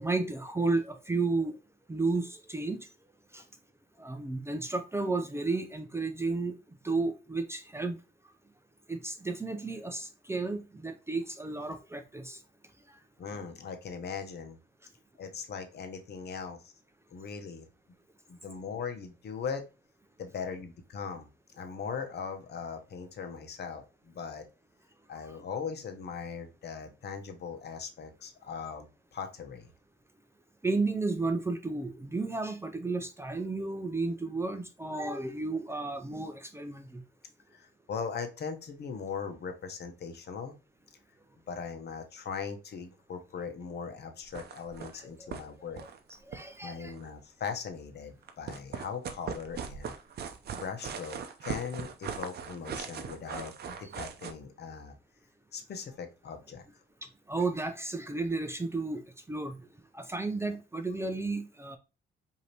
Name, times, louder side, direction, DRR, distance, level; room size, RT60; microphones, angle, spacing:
voice 1, 0.0-1.6 1.9-2.9 3.3-3.4 4.0-6.5 6.8-8.0 8.9-12.4 30.6-37.0 46.3-46.9 57.3-59.0 59.3-59.6 59.9-61.8, right 3 dB, 15° right, 0.5 m, -32 dB
voice 2, 13.2-14.6 15.2-16.7 17.1-17.7 18.3-19.6 20.2-21.3 21.6-24.4 25.1-29.7 37.5-40.5 41.5-45.8 46.6-49.9 50.5-54.9 55.5-56.6, left 6 dB, 55° left, 0.9 m, -39 dB
sound 1, 44.2-45.0 45.3-45.4 45.7-47.1 48.2-54.3, right 6 dB, 55° right, 0.6 m, -39 dB
5.0 x 2.8 x 2.8 m
cardioid pair, 90°, 20 cm